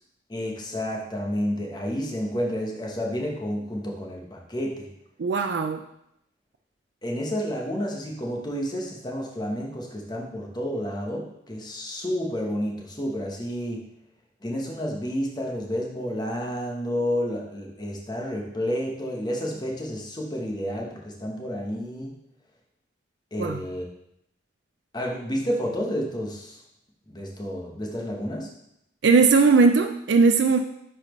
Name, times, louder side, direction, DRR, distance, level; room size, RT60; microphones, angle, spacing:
voice 1, 0.3-4.9 7.0-13.8 14.4-22.1 23.3-23.8 24.9-26.6 27.1-28.5, equal, 20° left, -1 dB, 1.1 m, -30 dB
voice 2, 5.2-5.8 23.4-23.6 29.0-30.6, right 4 dB, 65° right, 6 dB, 0.4 m, -19 dB
10.0 x 4.2 x 3.1 m, 0.77 s
head